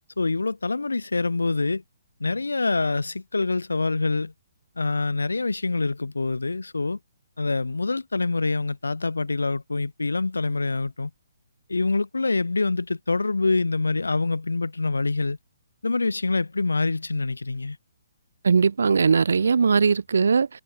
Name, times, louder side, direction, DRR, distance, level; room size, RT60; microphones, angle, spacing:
voice 1, 0.2-1.8 2.2-4.3 4.8-7.0 7.4-11.1 11.7-15.4 15.8-17.8, left 3 dB, 85° left, 1.0 m, -25 dB
voice 2, 18.4-20.5, right 5 dB, 70° right, 0.6 m, -19 dB
figure-of-eight pair, 140°, 0 cm